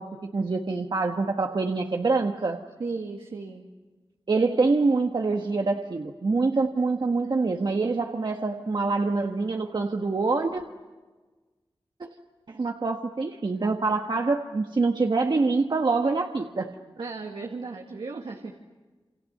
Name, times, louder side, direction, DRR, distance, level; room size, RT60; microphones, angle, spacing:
voice 1, 0.0-2.6 4.3-10.6 12.0-12.1 12.5-16.7, right 3 dB, 55° right, 3 dB, 1.4 m, -25 dB
voice 2, 2.8-3.7 17.0-18.6, right 4 dB, 80° right, 1 dB, 2.0 m, -35 dB
28.0 x 28.0 x 6.7 m, 1.3 s
wide cardioid pair, 85°, 9 cm